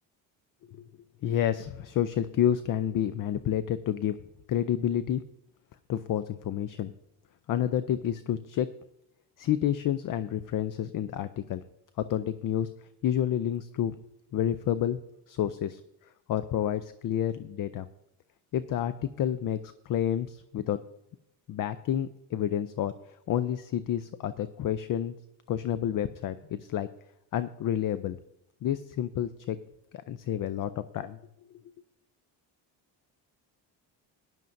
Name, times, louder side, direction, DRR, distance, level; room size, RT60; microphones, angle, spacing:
voice 1, 1.2-4.2 4.5-5.2 5.9-6.9 7.5-8.7 9.4-11.6 12.0-12.7 13.0-13.9 14.3-15.0 15.3-15.8 16.3-17.9 18.5-19.6 19.9-20.8 21.5-22.9 23.3-25.1 25.5-26.9 27.3-28.2 28.6-29.6 29.9-31.2, left 10 dB, 50° left, 13 dB, 0.5 m, -29 dB
16.5 x 10.5 x 2.6 m, 0.84 s
cardioid pair, 100°, 44 cm